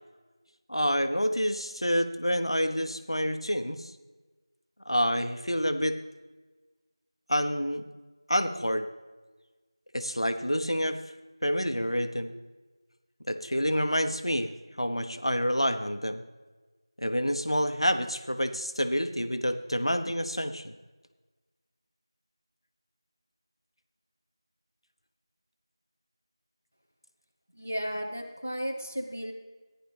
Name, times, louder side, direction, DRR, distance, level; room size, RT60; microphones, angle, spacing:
voice 1, 0.7-3.9 4.9-6.0 7.3-7.8 8.3-8.9 9.9-11.0 11.4-12.3 13.3-16.2 17.0-20.7, equal, 80° left, 9 dB, 1.0 m, -28 dB
voice 2, 27.5-29.3, equal, 25° left, 1 dB, 0.6 m, -34 dB
14.5 x 10.5 x 3.4 m, 1.3 s
figure-of-eight pair, 180°, 3 cm